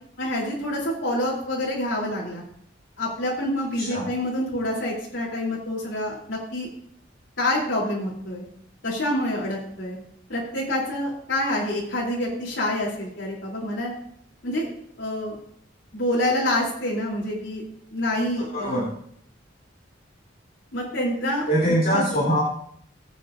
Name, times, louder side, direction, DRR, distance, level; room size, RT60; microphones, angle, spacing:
voice 1, 0.2-2.4 3.0-6.7 7.4-8.4 8.8-10.0 10.3-13.9 14.4-14.7 15.0-15.4 15.9-17.6 17.9-18.8 20.7-21.4 21.9-22.1, left 1 dB, 75° left, -6 dB, 3.3 m, -27 dB
voice 2, 18.5-18.9 21.5-22.4, equal, 50° left, -6 dB, 3.1 m, -22 dB
21.5 x 8.4 x 2.6 m, 0.68 s
head